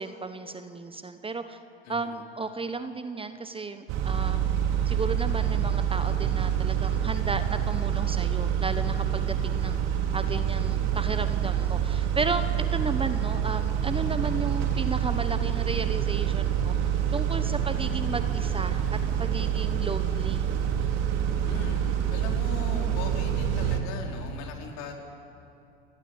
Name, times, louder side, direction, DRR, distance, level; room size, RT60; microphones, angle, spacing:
voice 1, 0.0-1.6 1.9-4.4 4.9-9.8 10.1-16.7 17.1-20.5, right 4 dB, 15° right, 10 dB, 1.2 m, -34 dB
Car / Idling / Accelerating revving vroom, 3.9-23.8, right 9 dB, 55° right, 2.9 m, -27 dB
voice 2, 21.4-24.9, left 5 dB, 55° left, 1 dB, 4.8 m, -39 dB
28.5 x 20.0 x 8.1 m, 2.7 s
hypercardioid pair, 80°, 32 cm